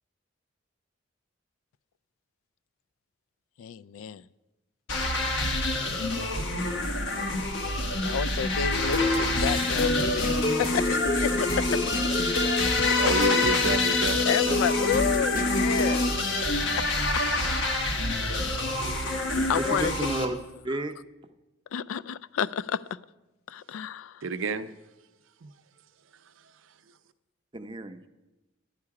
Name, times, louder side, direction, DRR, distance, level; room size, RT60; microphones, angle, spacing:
voice 1, 3.6-4.2 7.8-11.9 12.7-12.8 13.9-16.1 16.7-16.9 18.2-18.6 19.5-19.9 21.7-23.0 23.5-24.2, left 7 dB, 85° left, 0.3 m, -31 dB
sound 1, 4.9-20.3, left 2 dB, 70° left, 1.2 m, -27 dB
sound 2, 8.7-16.1, left 2 dB, 40° left, 0.6 m, -28 dB
voice 2, 12.6-14.2 14.5-14.8 15.8-16.2 24.2-24.7 25.4-25.5, right 4 dB, 75° right, 0.5 m, -31 dB
voice 3, 19.3-20.3 20.6-20.9 27.5-28.1, right 2 dB, 25° right, 0.5 m, -32 dB
10.5 x 9.9 x 4.8 m
head